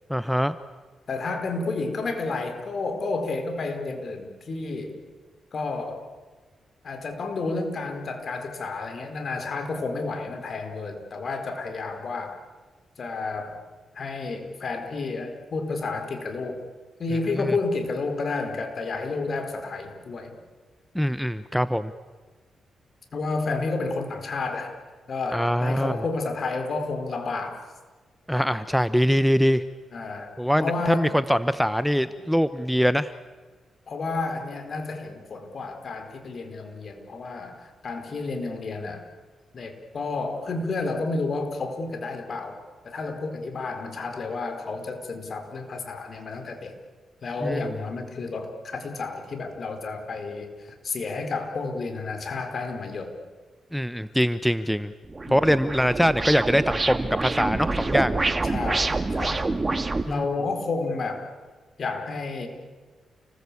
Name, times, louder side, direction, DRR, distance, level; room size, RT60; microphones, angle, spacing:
voice 1, 0.1-0.5 17.4-17.5 20.9-21.9 25.3-25.9 28.3-29.6 30.4-33.1 47.4-47.6 53.7-54.9 55.3-58.2 60.1-60.2, equal, ahead, 13 dB, 0.9 m, -23 dB
voice 2, 1.1-5.0 5.5-6.0 6.8-12.4 13.0-13.6 13.9-16.6 17.0-20.4 23.1-24.8 25.1-27.6 29.9-31.1 33.9-39.0 39.5-46.7 47.2-53.2 55.3-55.4 58.4-59.4 60.1-61.2 61.8-62.5, left 3 dB, 55° left, 6 dB, 4.5 m, -31 dB
sound 1, 55.0-60.0, right 3 dB, 30° right, 2.0 m, -26 dB
29.5 x 20.0 x 8.6 m, 1.4 s
cardioid pair, 80°, 0 cm